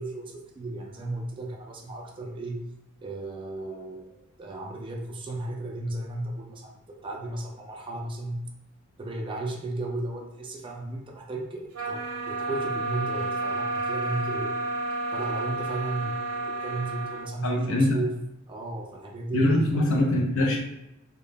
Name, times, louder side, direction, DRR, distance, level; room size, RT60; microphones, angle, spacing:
voice 1, 0.0-2.6 3.0-8.4 9.0-14.5 15.1-18.1 18.4-20.0, right 2 dB, 25° right, 0 dB, 0.3 m, -34 dB
sound 1, 11.7-17.3, right 3 dB, 75° right, 0.6 m, -31 dB
voice 2, 17.4-18.0 19.3-20.6, left 1 dB, 65° left, 1 dB, 0.5 m, -23 dB
2.2 x 2.0 x 3.3 m, 0.88 s
head